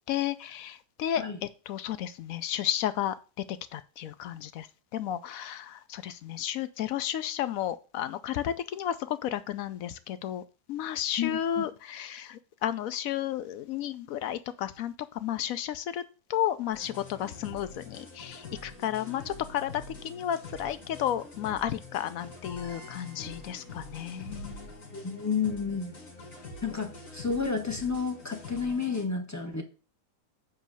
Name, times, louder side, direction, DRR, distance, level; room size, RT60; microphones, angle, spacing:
voice 1, 0.1-3.2 3.5-4.7 4.9-10.4 10.7-16.0 16.3-24.7, left 11 dB, 70° left, 0.9 m, -33 dB
voice 2, 11.2-11.6 24.9-25.9 26.6-29.6, left 5 dB, 15° left, 0.8 m, -31 dB
sound 1, 16.7-29.0, left 2 dB, 55° left, 1.8 m, -45 dB
7.7 x 3.1 x 6.2 m
omnidirectional pair, 1.8 m